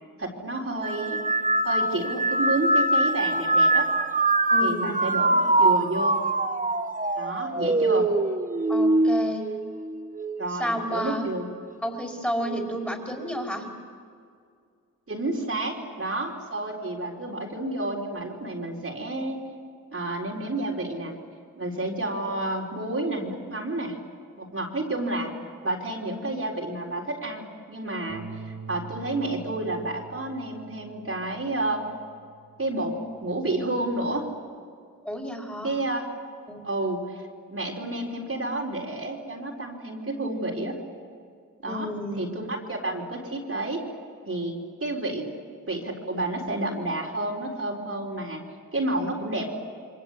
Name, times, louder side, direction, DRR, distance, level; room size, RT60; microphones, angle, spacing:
voice 1, 0.2-1.3 1.6-3.9 4.6-6.2 7.1-8.1 10.4-11.4 15.1-19.4 19.9-21.1 21.5-24.0 24.4-25.3 25.6-31.9 32.6-32.9 33.2-34.3 35.6-36.1 36.6-37.2 37.5-40.7 41.6-41.9 42.2-43.8 44.3-45.3 45.7-48.4 48.7-49.5, right 2 dB, 40° right, -2 dB, 4.4 m, -30 dB
sound 1, 0.8-10.4 10.9-11.5 12.4-12.8, right 2 dB, 25° right, 1.2 m, -24 dB
voice 2, 4.5-5.0 8.7-9.4 10.5-11.2 11.8-13.6 35.0-35.7 36.5-36.6 41.7-42.3, equal, 5° left, 0 dB, 5.0 m, -31 dB
sound 2, 28.1-34.3, right 6 dB, 80° right, 2.8 m, -45 dB
28.5 x 24.0 x 8.1 m, 2.2 s
wide cardioid pair, 80°, 34 cm